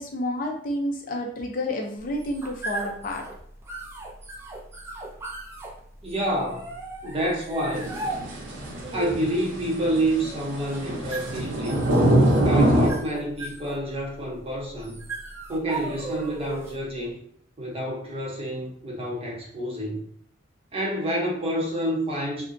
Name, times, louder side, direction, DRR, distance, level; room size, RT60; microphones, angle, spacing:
voice 1, 0.0-3.3, left 1 dB, 45° left, 1 dB, 0.5 m, -30 dB
sound 1, 2.0-16.9, right 2 dB, 15° right, 0.3 m, -38 dB
voice 2, 6.0-6.7 7.0-7.9 8.9-11.9 12.4-15.0 15.5-17.2 17.6-20.1 20.7-22.5, right 1 dB, 30° right, -3 dB, 0.8 m, -28 dB
sound 2, 7.7-12.9, right 1 dB, 65° right, 0.7 m, -23 dB
2.7 x 2.2 x 2.5 m, 0.63 s
head